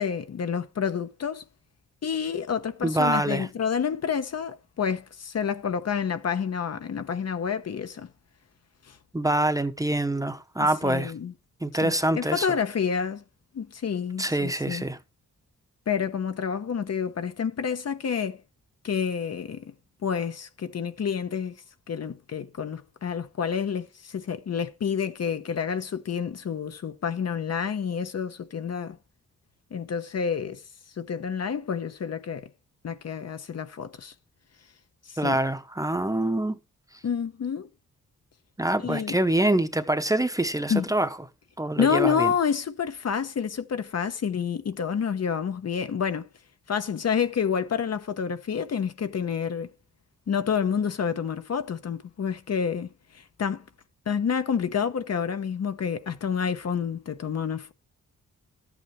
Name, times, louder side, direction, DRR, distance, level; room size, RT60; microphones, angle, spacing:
voice 1, 0.0-1.4 2.0-8.1 8.8-9.0 10.6-11.3 11.8-13.2 13.5-14.8 15.9-18.4 18.8-19.7 20.0-29.0 29.7-30.6 31.0-32.5 32.8-34.1 35.0-35.4 37.0-37.7 38.8-39.2 40.7-40.9 41.8-46.3 46.7-49.7 50.3-53.6 54.1-57.7, left 7 dB, 55° left, 1.0 m, -29 dB
voice 2, 2.8-3.5 9.1-11.1 11.6-12.5 14.2-15.0 35.2-36.6 38.6-41.1 41.6-42.3, right 1 dB, 10° right, 0.9 m, -25 dB
13.5 x 8.3 x 3.2 m
wide cardioid pair, 110°, 31 cm